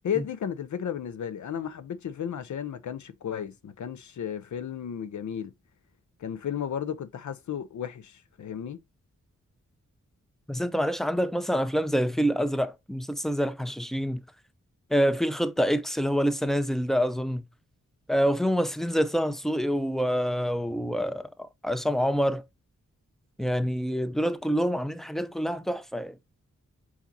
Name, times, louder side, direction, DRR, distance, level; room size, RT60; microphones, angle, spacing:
voice 1, 0.0-5.5 6.2-8.8, left 8 dB, 70° left, 0.5 m, -34 dB
voice 2, 10.5-14.2 14.9-17.4 18.1-21.3 21.6-22.4 23.4-26.2, equal, ahead, 0.4 m, -26 dB
4.8 x 4.2 x 2.6 m
wide cardioid pair, 80°, 30 cm